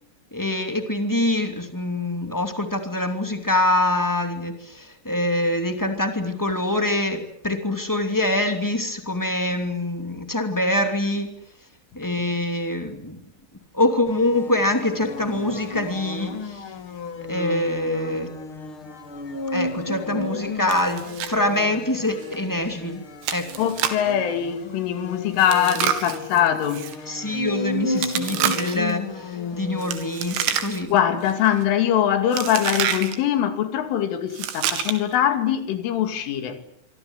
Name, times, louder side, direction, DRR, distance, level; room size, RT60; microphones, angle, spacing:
voice 1, 0.3-11.3 11.9-13.2 13.7-16.6 17.3-18.3 19.5-23.0 23.3-23.5 27.1-30.9, left 1 dB, 10° left, 0.9 m, -24 dB
sound 1, 14.1-30.7, left 3 dB, 40° left, 2.1 m, -33 dB
Chewing mastication, 20.7-21.4 21.6-21.7 22.2-22.4 23.2-24.1 25.4-27.0 28.0-28.9 29.8-31.0 31.3-31.6 32.3-33.2 34.3-35.2, right 10 dB, 80° right, 4.5 m, -28 dB
voice 2, 23.6-27.3 30.9-36.6, left 10 dB, 85° left, 4.9 m, -22 dB
26.0 x 25.0 x 8.1 m
omnidirectional pair, 5.5 m